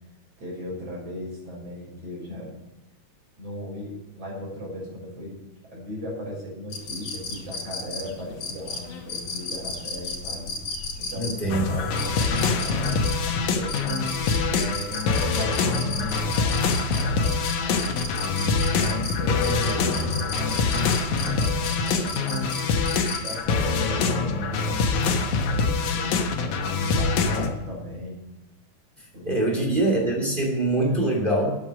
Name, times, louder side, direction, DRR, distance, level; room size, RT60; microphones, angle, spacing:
voice 1, 0.4-2.5 3.4-5.4 5.7-10.5 11.0-14.1 14.5-18.0 18.7-22.6 23.2-26.6 26.9-28.3 29.1-30.0 30.9-31.0, equal, 50° right, -3 dB, 7.3 m, -38 dB
sound 1, 6.7-23.4, left 3 dB, 55° left, 2.9 m, -35 dB
voice 2, 11.2-11.6 27.4-27.5 29.2-31.5, right 2 dB, 15° right, 0 dB, 2.9 m, -23 dB
sound 2, 11.5-27.5, left 4 dB, 70° left, 2.6 m, -24 dB
14.0 x 9.9 x 6.1 m, 0.99 s
omnidirectional pair, 3.6 m